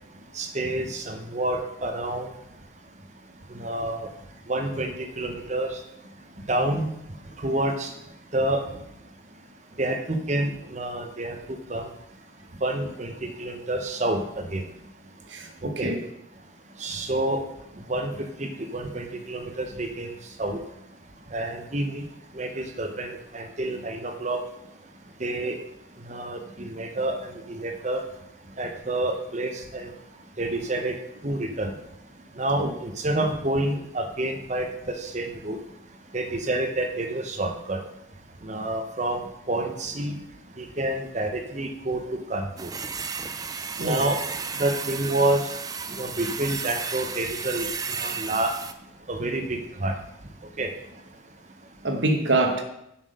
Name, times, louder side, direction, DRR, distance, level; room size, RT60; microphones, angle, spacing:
voice 1, 0.3-2.3 3.6-4.1 4.5-5.7 6.5-6.9 7.4-7.9 8.3-8.6 9.8-11.4 11.7-11.9 12.6-14.6 15.8-15.9 16.8-17.4 17.9-18.1 18.4-20.1 20.4-20.6 21.3-22.0 22.3-24.4 25.2-25.5 26.1-27.1 27.5-28.0 28.6-29.9 30.4-30.9 31.2-31.7 32.4-34.7 35.0-35.6 36.1-37.8 38.5-39.2 39.5-40.2 40.6-42.0 42.3-42.7 43.8-44.2 44.6-45.4 46.0-47.6 48.0-48.5 49.1-49.9 50.6-50.7, right 1 dB, 35° right, 0.9 m, -28 dB
voice 2, 15.3-16.1 32.6-32.7 43.8-44.1 51.8-52.6, right 2 dB, 70° right, 1.4 m, -25 dB
sound 1, 42.6-48.7, right 5 dB, 20° right, 0.4 m, -33 dB
7.5 x 6.1 x 6.5 m
head